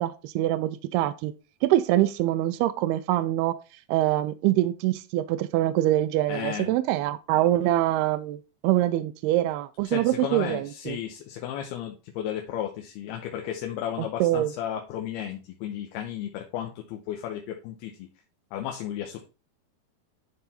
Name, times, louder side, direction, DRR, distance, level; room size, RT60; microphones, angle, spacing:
voice 1, 0.0-1.3 1.6-3.5 3.9-11.0 14.2-14.5, right 14 dB, 85° right, 11 dB, 2.5 m, -24 dB
voice 2, 6.3-6.8 9.8-18.1 18.5-19.3, left 10 dB, 80° left, 3 dB, 2.8 m, -34 dB
11.5 x 3.9 x 4.2 m, 0.32 s
omnidirectional pair, 4.6 m